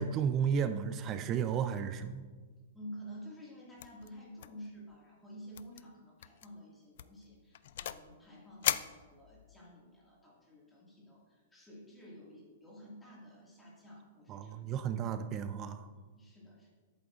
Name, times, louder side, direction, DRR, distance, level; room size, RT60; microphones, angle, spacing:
voice 1, 0.0-2.2 14.3-15.9, right 7 dB, 25° right, 11 dB, 0.3 m, -33 dB
voice 2, 2.7-14.6 15.9-16.7, equal, 10° left, -5 dB, 2.0 m, -51 dB
sound 1, 3.8-4.1 4.4-4.7 4.9-5.0 5.5-5.8 6.2-6.5 7.0-8.1 8.6-9.6, left 12 dB, 55° left, 0.3 m, -37 dB
10.5 x 8.5 x 2.5 m, 1.4 s
hypercardioid pair, 160°, 0 cm